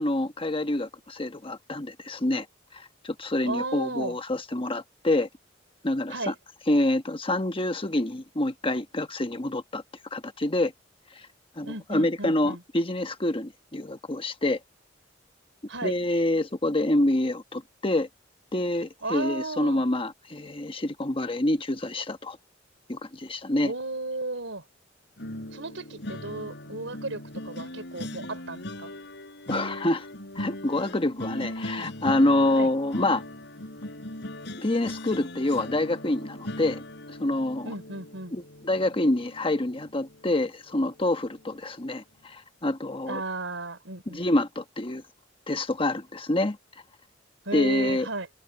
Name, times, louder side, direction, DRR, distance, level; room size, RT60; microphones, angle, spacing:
voice 1, 0.0-2.5 2.7-5.3 5.8-6.3 6.7-9.8 10.1-10.7 11.6-14.6 15.8-18.1 18.5-22.4 22.9-23.7 29.5-30.0 30.3-33.2 34.6-36.8 37.1-37.7 38.3-43.2 44.1-45.0 45.5-46.6 47.5-48.1, left 1 dB, 30° left, 1.2 m, -27 dB
voice 2, 3.4-4.2 6.1-6.3 11.6-12.6 15.7-15.9 19.0-19.8 23.6-24.6 25.5-28.9 32.5-32.7 37.6-38.3 43.1-44.2 47.4-48.3, right 2 dB, 90° right, 4.7 m, -34 dB
sound 1, 25.2-40.3 40.7-41.0 41.3-41.5, left 1 dB, 65° left, 4.0 m, -39 dB
head